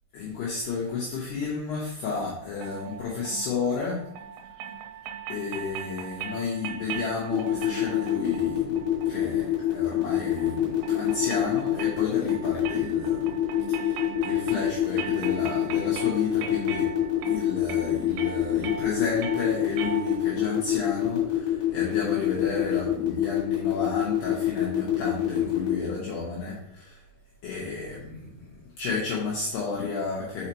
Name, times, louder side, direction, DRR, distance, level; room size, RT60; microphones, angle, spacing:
voice 1, 0.1-4.0 5.3-13.3 13.7-16.9 17.2-27.0 27.4-30.5, left 4 dB, 80° left, -5 dB, 2.4 m, -32 dB
sound 1, 2.6-20.5, right 6 dB, 90° right, 3.5 m, -39 dB
sound 2, 7.3-25.7, left 12 dB, 50° left, 2.4 m, -25 dB
5.9 x 5.7 x 2.9 m, 0.76 s
omnidirectional pair, 5.9 m